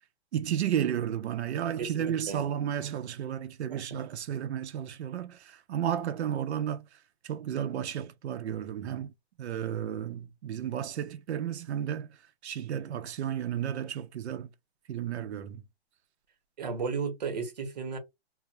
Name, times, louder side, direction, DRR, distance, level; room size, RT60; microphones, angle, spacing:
voice 1, 0.3-6.8 7.3-9.1 9.4-12.1 12.4-14.5 14.9-15.6, right 9 dB, 90° right, 0.5 m, -32 dB
voice 2, 1.8-2.4 3.7-4.0 16.6-18.0, right 5 dB, 40° right, 0.7 m, -34 dB
2.2 x 2.0 x 2.7 m
hypercardioid pair, 180°, 32 cm